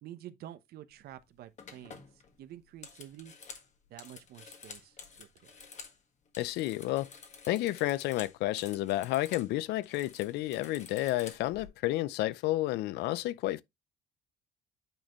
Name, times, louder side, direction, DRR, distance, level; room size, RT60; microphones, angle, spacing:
voice 1, 0.0-3.3 3.9-5.6, right 12 dB, 70° right, 0.8 m, -49 dB
sound 1, 1.0-1.2 1.6-6.0 6.3-9.5 9.8-11.7, left 5 dB, 45° left, 1.6 m, -50 dB
voice 2, 6.4-7.1 7.5-13.6, left 16 dB, 80° left, 0.5 m, -31 dB
8.9 x 4.2 x 3.0 m
cardioid pair, 110°, 17 cm